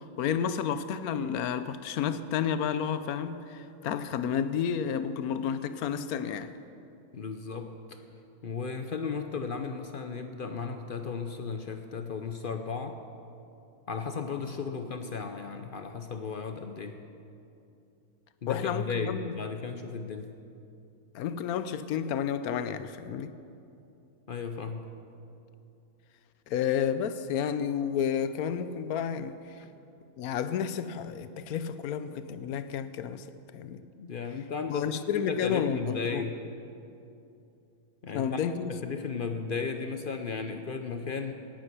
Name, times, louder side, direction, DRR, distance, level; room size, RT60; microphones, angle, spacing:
voice 1, 0.0-6.5 18.5-19.4 21.1-23.3 26.5-29.4 30.2-33.2 33.5-33.8 34.7-36.2 38.1-38.8, left 8 dB, 90° left, 1.1 m, -31 dB
voice 2, 7.1-8.0 8.4-13.0 13.9-17.0 18.4-20.3 24.3-24.9 34.0-36.4 38.0-38.4 38.7-41.3, left 5 dB, 55° left, 0.6 m, -35 dB
17.5 x 8.7 x 6.0 m
omnidirectional pair, 1.5 m